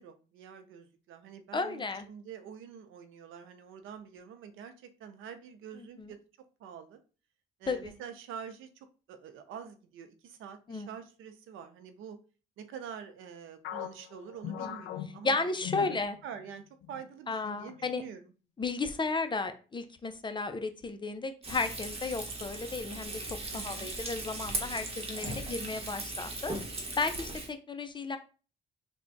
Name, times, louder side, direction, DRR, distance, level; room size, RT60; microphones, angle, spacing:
voice 1, 0.0-6.2 6.6-7.0 7.6-8.7 9.1-12.2 12.6-16.0 16.2-18.3 23.5-23.9, right 7 dB, 85° right, 8 dB, 0.6 m, -46 dB
voice 2, 1.5-2.1 5.8-6.1 7.7-7.9 10.7-10.9 14.6-14.8 15.2-16.2 17.3-18.0 18.6-26.5 27.0-28.2, left 3 dB, 25° left, 8 dB, 0.5 m, -34 dB
sound 1, 13.6-16.5 16.8-17.0 17.7-18.1, left 10 dB, 80° left, 0.4 m, -41 dB
Frying (food), 21.4-27.5, right 2 dB, 30° right, 1.0 m, -38 dB
3.4 x 2.2 x 3.9 m, 0.35 s
cardioid pair, 90°, 20 cm